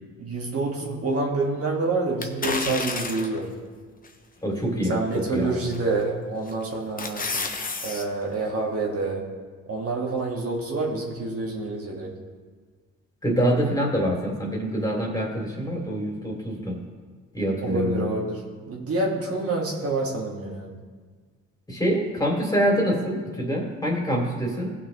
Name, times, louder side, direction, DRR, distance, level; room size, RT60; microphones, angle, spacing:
voice 1, 0.2-3.5 4.9-7.3 7.8-9.3 9.7-12.1 17.6-18.4 18.7-20.7, right 3 dB, 50° right, -2 dB, 1.8 m, -27 dB
sound 1, 2.2-3.4 4.0-4.1 5.7-6.1 6.5-8.0 8.4-8.5, left 4 dB, 30° left, 0.9 m, -30 dB
voice 2, 4.4-5.7 13.2-16.8 17.3-18.1 21.7-24.7, equal, 10° left, -1 dB, 2.6 m, -25 dB
17.5 x 6.0 x 3.1 m, 1.5 s
cardioid pair, 90°, 30 cm